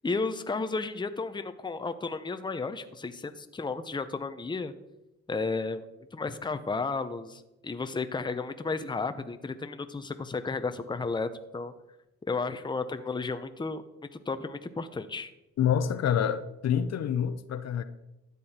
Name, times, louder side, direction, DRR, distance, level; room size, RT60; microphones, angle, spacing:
voice 1, 0.0-4.7 5.3-5.8 6.1-11.7 12.3-13.8 14.3-15.3, left 4 dB, 15° left, 0.8 m, -33 dB
voice 2, 15.6-17.8, left 8 dB, 60° left, 0.8 m, -27 dB
12.5 x 8.5 x 4.3 m
cardioid pair, 90°, 30 cm